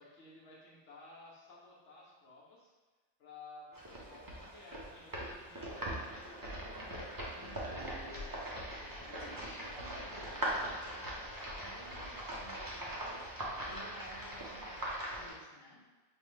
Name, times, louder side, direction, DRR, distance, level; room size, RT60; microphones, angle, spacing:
voice 1, 0.0-2.7 3.2-6.8 7.6-8.3 9.0-10.5, left 2 dB, 65° left, -5 dB, 1.3 m, -55 dB
sound 1, 3.7-15.3, right 1 dB, 30° right, 0.4 m, -41 dB
voice 2, 7.3-7.8 9.2-13.2 13.6-15.9, left 1 dB, 40° left, -3 dB, 0.3 m, -53 dB
5.2 x 2.3 x 3.1 m, 1.3 s
omnidirectional pair, 1.4 m